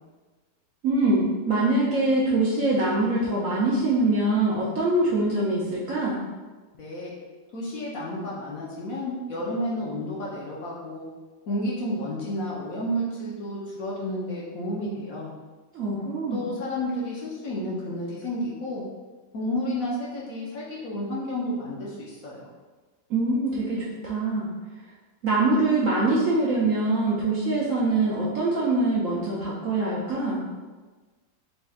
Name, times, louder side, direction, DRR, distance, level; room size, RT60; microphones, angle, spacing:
voice 1, 0.8-6.2 15.7-16.4 23.1-24.5 25.2-30.4, right 2 dB, 65° right, -6 dB, 0.8 m, -24 dB
voice 2, 6.8-7.1 7.5-11.1 11.5-15.3 16.3-18.8 19.3-22.5, equal, 60° left, -6 dB, 1.0 m, -31 dB
4.2 x 2.3 x 3.5 m, 1.3 s
omnidirectional pair, 1.9 m